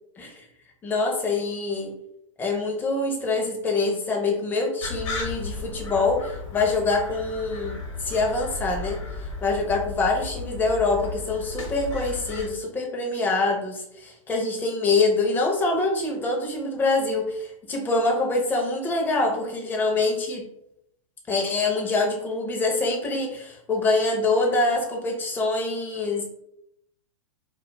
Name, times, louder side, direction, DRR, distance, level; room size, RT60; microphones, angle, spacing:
voice 1, 0.8-1.9 2.4-9.0 9.4-20.4 21.3-26.2, left 3 dB, 10° left, 0 dB, 0.5 m, -25 dB
sound 1, 4.8-12.5, left 3 dB, 60° left, 0.8 m, -35 dB
2.2 x 2.1 x 3.0 m, 0.77 s
hypercardioid pair, 115°, 17 cm